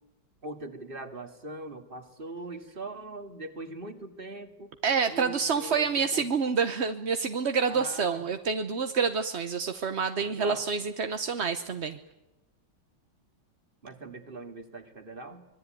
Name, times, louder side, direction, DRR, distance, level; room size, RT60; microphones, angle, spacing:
voice 1, 0.4-4.7 5.1-6.3 7.7-8.2 10.2-10.7 13.8-15.5, right 2 dB, 25° right, 7 dB, 2.5 m, -41 dB
voice 2, 4.8-12.0, right 5 dB, 45° right, 9 dB, 1.0 m, -28 dB
25.5 x 21.0 x 9.3 m, 1.0 s
omnidirectional pair, 2.3 m